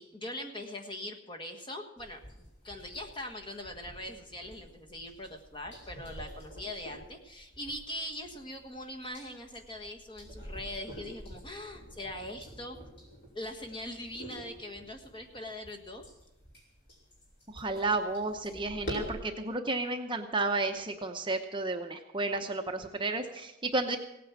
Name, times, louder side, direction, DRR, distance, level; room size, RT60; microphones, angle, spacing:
voice 1, 0.0-12.8 13.3-16.0, left 1 dB, 25° left, 3 dB, 1.5 m, -42 dB
sound 1, 2.0-19.2, equal, 55° left, 5.3 m, -47 dB
voice 2, 17.5-24.0, right 2 dB, 25° right, 4 dB, 0.9 m, -32 dB
17.5 x 9.3 x 7.3 m, 0.92 s
head